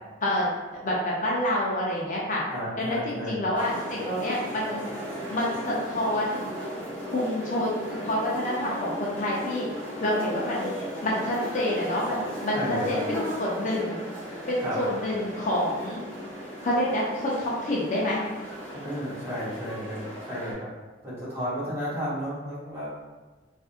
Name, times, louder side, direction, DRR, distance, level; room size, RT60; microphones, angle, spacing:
voice 1, 0.8-2.4 2.8-4.9 5.3-6.4 7.1-9.7 10.0-10.7 11.0-12.6 12.9-14.0 14.5-16.0 16.6-18.2, left 1 dB, 45° left, -5 dB, 0.5 m, -28 dB
voice 2, 2.5-3.4 12.5-13.0 14.6-15.0 18.8-20.7 21.0-22.9, equal, 15° right, -10 dB, 1.2 m, -33 dB
sound 1, 3.5-20.5, equal, 10° left, 1.1 m, -36 dB
3.6 x 2.5 x 2.5 m, 1.2 s
head